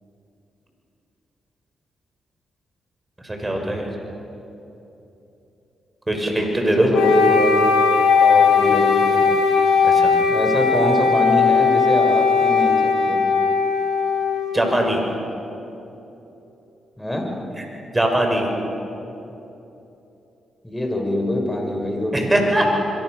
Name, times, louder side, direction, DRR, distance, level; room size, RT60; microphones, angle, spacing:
voice 1, 3.2-3.9 6.1-6.9 9.8-10.1 14.5-15.0 17.6-17.7 17.9-18.6 22.1-22.8, right 1 dB, 20° right, 2 dB, 6.4 m, -21 dB
voice 2, 6.6-7.6 8.1-9.3 10.3-12.8 13.1-13.3 17.0-17.3 20.6-22.7, left 1 dB, 10° left, 1 dB, 6.6 m, -24 dB
Wind instrument woodwind instrument, 6.9-15.0, left 5 dB, 75° left, 2.2 m, -18 dB
26.5 x 23.0 x 6.8 m, 3.0 s
hypercardioid pair, 40°, 0 cm